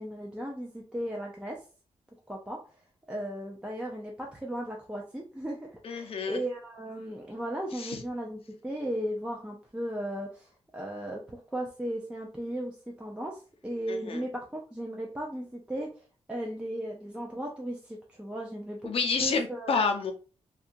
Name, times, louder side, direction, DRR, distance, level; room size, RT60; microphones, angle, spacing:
voice 1, 0.0-1.6 2.3-2.6 3.1-16.0 16.3-18.8 19.2-19.8, right 1 dB, 10° right, -1 dB, 0.4 m, -36 dB
voice 2, 5.8-6.4 7.8-8.0 13.9-14.2 18.8-20.1, left 4 dB, 55° left, 4 dB, 0.5 m, -29 dB
2.7 x 2.3 x 2.5 m, 0.36 s
wide cardioid pair, 135°, 12 cm